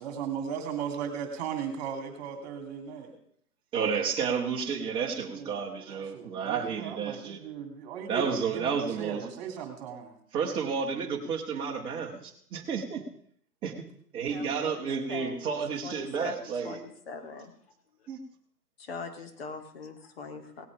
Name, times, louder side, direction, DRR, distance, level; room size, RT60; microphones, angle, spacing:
voice 1, 0.0-3.1 5.3-10.1, right 7 dB, 25° right, 5 dB, 3.0 m, -37 dB
voice 2, 3.7-7.4 8.1-9.3 10.3-13.0 13.6-13.7 14.1-16.8 18.1-18.2, right 6 dB, 10° right, 0 dB, 1.5 m, -31 dB
voice 3, 14.3-17.5 18.8-20.7, left 4 dB, 40° left, 5 dB, 2.5 m, -42 dB
18.5 x 8.3 x 5.0 m, 0.62 s
figure-of-eight pair, 140°, 47 cm